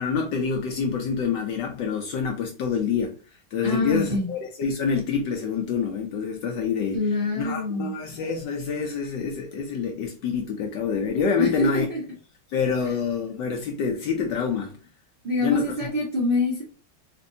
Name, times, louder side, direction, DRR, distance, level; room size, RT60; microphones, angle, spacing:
voice 1, 0.0-3.2 3.5-7.0 7.4-11.9 12.5-14.8 15.4-15.9, left 5 dB, 70° left, 1.1 m, -26 dB
voice 2, 3.6-4.2 6.9-7.9 11.4-12.0 15.2-16.6, left 2 dB, 40° right, 0.8 m, -25 dB
4.4 x 2.4 x 2.6 m
omnidirectional pair, 2.3 m